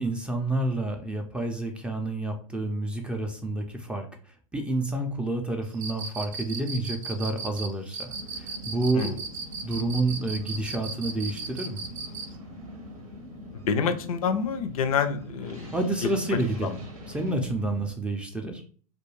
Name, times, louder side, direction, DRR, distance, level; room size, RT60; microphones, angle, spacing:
voice 1, 0.0-4.1 4.5-9.2 9.6-11.8 15.7-16.8 17.1-18.6, right 2 dB, 5° right, 3 dB, 0.4 m, -29 dB
Cricket, 5.7-12.3, right 4 dB, 65° right, 0.5 m, -36 dB
sound 1, 8.1-17.9, equal, 85° right, 0.9 m, -43 dB
voice 2, 13.5-15.7 16.0-16.1 16.6-16.7, left 6 dB, 80° left, 10 dB, 0.4 m, -27 dB
2.3 x 2.2 x 3.0 m, 0.43 s
hypercardioid pair, 105°, 18 cm